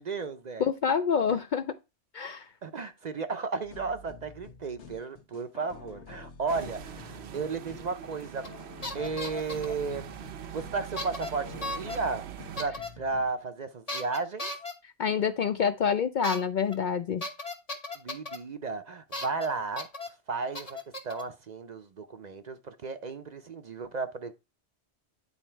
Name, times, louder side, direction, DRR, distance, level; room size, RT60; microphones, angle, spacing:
voice 1, 0.0-0.7 2.6-8.4 8.9-10.1 10.5-12.2 12.6-14.5 18.0-19.9 20.3-24.3, right 4 dB, 50° right, 0.6 m, -34 dB
voice 2, 0.6-1.8 2.1-2.5 15.0-17.2, left 6 dB, 60° left, 0.5 m, -27 dB
sound 1, 3.6-13.3, left 4 dB, 85° left, 1.3 m, -49 dB
sound 2, 6.5-12.7, right 9 dB, 70° right, 0.9 m, -43 dB
sound 3, 8.4-8.6 8.8-9.7 11.0-11.3 11.6-12.0 12.6-12.9 13.9-14.7 16.2-16.4 16.7-16.8 17.2-18.4 19.1-19.5 19.8-20.1 20.5-21.2, left 2 dB, 35° left, 1.2 m, -36 dB
9.5 x 4.1 x 4.4 m
omnidirectional pair, 1.1 m